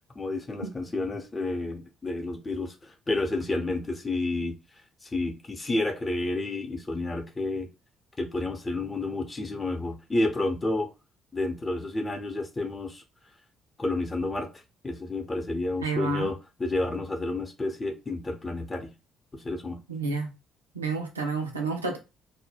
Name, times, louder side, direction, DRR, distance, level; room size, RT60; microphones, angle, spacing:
voice 1, 0.2-4.6 5.0-7.7 8.2-10.9 11.3-13.0 13.8-14.5 14.8-18.9 19.3-19.8, left 2 dB, 25° left, 0.7 m, -30 dB
voice 2, 15.8-16.3 19.9-20.3 20.7-22.0, right 4 dB, 85° right, 0.4 m, -30 dB
2.1 x 2.1 x 3.3 m
figure-of-eight pair, 45°, 0 cm